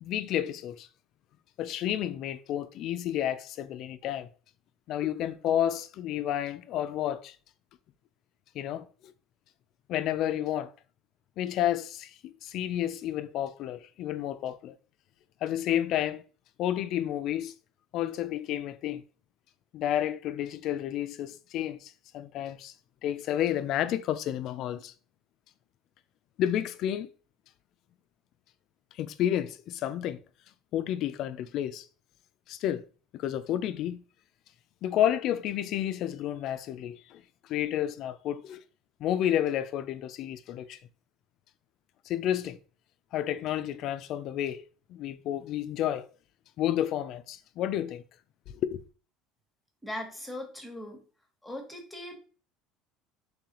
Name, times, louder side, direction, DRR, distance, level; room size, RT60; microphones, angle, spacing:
voice 1, 0.0-0.9 1.6-4.3 4.9-7.4 8.5-8.9 9.9-10.7 11.4-14.8 15.4-16.2 16.6-17.5 17.9-19.0 19.7-22.7 23.0-24.9 26.4-27.1 29.0-30.2 30.7-31.9 32.5-32.8 33.1-34.0 34.8-37.2 37.5-38.6 39.0-40.8 42.1-42.6 43.1-44.6 44.9-46.1 46.6-48.0 48.6-48.8, left 11 dB, 55° left, 0.3 m, -30 dB
voice 2, 49.8-51.0 51.4-52.2, left 1 dB, 5° left, 1.0 m, -39 dB
3.9 x 3.2 x 2.9 m
cardioid pair, 130°, 0 cm